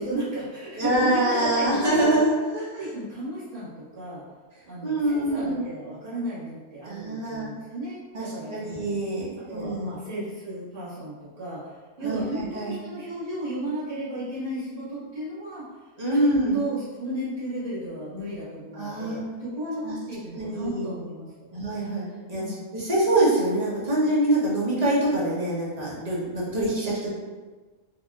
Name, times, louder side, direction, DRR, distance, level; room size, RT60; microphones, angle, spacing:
voice 1, 0.0-2.2 2.7-4.2 4.7-8.9 9.5-11.6 12.0-15.7 16.1-21.3 22.3-22.6, right 1 dB, 60° right, -9 dB, 1.7 m, -34 dB
voice 2, 0.8-2.6 4.8-5.6 6.8-7.5 8.1-9.9 12.0-12.7 16.0-16.6 18.7-19.2 19.8-20.0 20.3-20.9 21.5-22.0 22.3-22.4 22.7-27.1, right 1 dB, 30° right, -7 dB, 1.0 m, -25 dB
4.7 x 2.6 x 2.3 m, 1.3 s
omnidirectional pair, 1.5 m